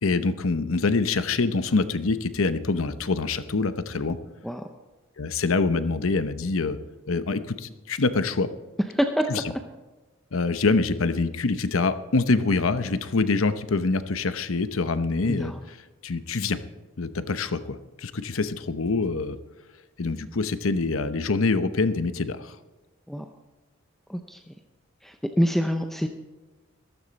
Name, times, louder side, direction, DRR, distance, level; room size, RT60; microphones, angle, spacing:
voice 1, 0.0-4.2 5.2-6.8 7.1-8.5 9.3-9.4 10.3-15.8 16.0-16.6 17.0-19.4 20.0-22.5, left 3 dB, 80° left, 12 dB, 0.8 m, -25 dB
voice 2, 9.0-9.4 15.2-15.6 23.1-23.3 24.1-24.5 25.0-26.1, equal, ahead, 5 dB, 0.6 m, -26 dB
14.5 x 13.0 x 4.1 m, 1.2 s
head